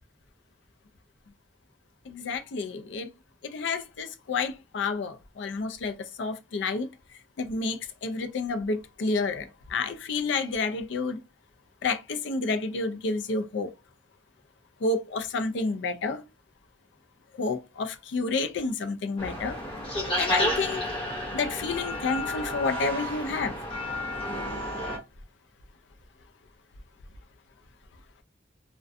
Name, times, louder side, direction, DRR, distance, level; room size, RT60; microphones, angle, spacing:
voice 1, 2.1-3.1 3.4-6.9 7.4-11.2 11.8-13.7 14.8-16.2 17.4-19.6 20.2-21.0 21.3-23.5, left 4 dB, 70° left, 0.4 m, -30 dB
sound 1, 19.2-25.0, left 1 dB, 30° left, 0.8 m, -31 dB
2.4 x 2.2 x 2.5 m
head